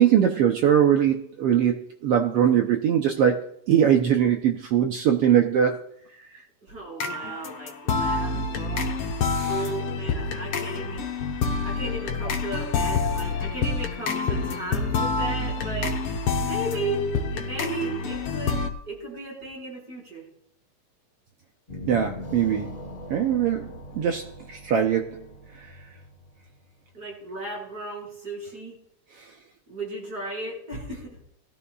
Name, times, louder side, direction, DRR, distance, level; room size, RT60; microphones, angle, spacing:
voice 1, 0.0-1.8 2.0-5.8 9.3-9.5 11.4-11.6 21.9-22.8 23.1-25.2, right 9 dB, 70° right, 4 dB, 1.4 m, -21 dB
voice 2, 6.6-9.0 9.5-11.1 11.6-16.0 16.4-18.6 18.9-20.3 26.9-28.8 29.7-31.2, right 2 dB, 30° right, -3 dB, 5.3 m, -35 dB
sound 1, 7.0-18.7, left 4 dB, 65° left, 1.7 m, -27 dB
sound 2, 21.7-26.9, left 1 dB, 35° left, 0.7 m, -41 dB
19.0 x 12.5 x 2.3 m, 0.71 s
omnidirectional pair, 3.3 m